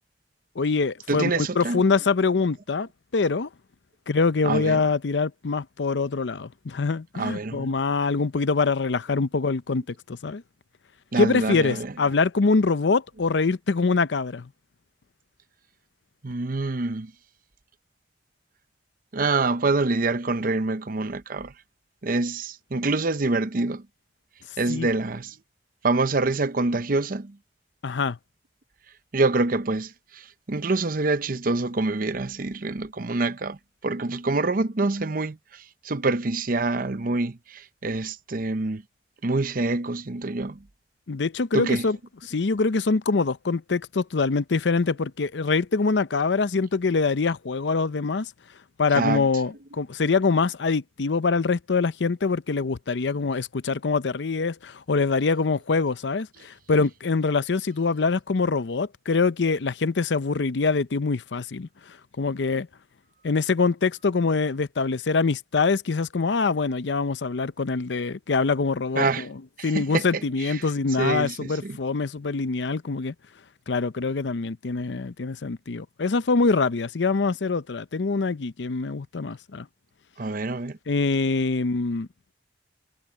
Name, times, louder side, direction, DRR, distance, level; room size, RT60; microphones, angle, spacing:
voice 1, 0.6-3.5 4.1-10.4 11.2-14.5 24.7-24.9 27.8-28.2 41.1-42.0 42.3-48.3 48.8-62.7 63.2-69.3 69.6-73.1 73.7-79.7 80.9-82.1, left 4 dB, 90° left, 0.6 m, -24 dB
voice 2, 1.1-1.8 4.4-4.8 7.1-7.7 11.1-11.9 16.2-17.1 19.1-21.5 22.0-23.8 24.6-25.3 25.8-27.4 29.1-33.6 33.8-38.8 39.2-40.6 41.5-41.9 48.9-49.3 69.0-69.3 69.6-70.1 70.4-70.6 71.0-71.8 80.2-80.8, right 3 dB, 50° right, 0.8 m, -26 dB
head